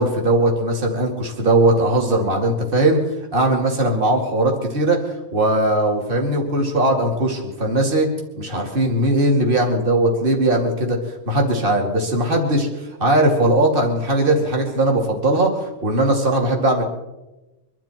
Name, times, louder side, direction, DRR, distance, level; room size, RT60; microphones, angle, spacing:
voice 1, 0.0-3.0 3.3-11.0 11.3-15.5 15.8-16.8, right 1 dB, 25° right, 1 dB, 2.6 m, -19 dB
24.5 x 12.0 x 4.5 m, 1.0 s
omnidirectional pair, 2.3 m